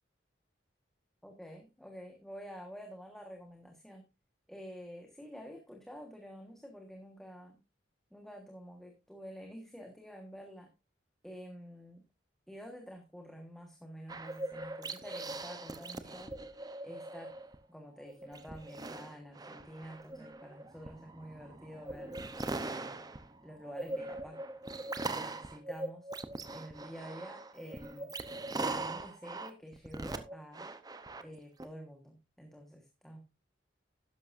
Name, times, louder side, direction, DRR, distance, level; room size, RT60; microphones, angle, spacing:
voice 1, 1.2-4.0 4.5-7.6 8.1-10.7 11.2-12.0 12.5-16.3 16.8-17.3 17.7-22.2 22.6-23.0 23.4-24.4 25.1-26.1 26.5-28.1 28.5-30.7 31.2-33.3, equal, ahead, 2 dB, 1.4 m, -49 dB
sound 1, 14.1-17.6 18.0-31.6, right 2 dB, 20° right, 0.8 m, -41 dB
12.5 x 10.5 x 2.6 m, 0.26 s
head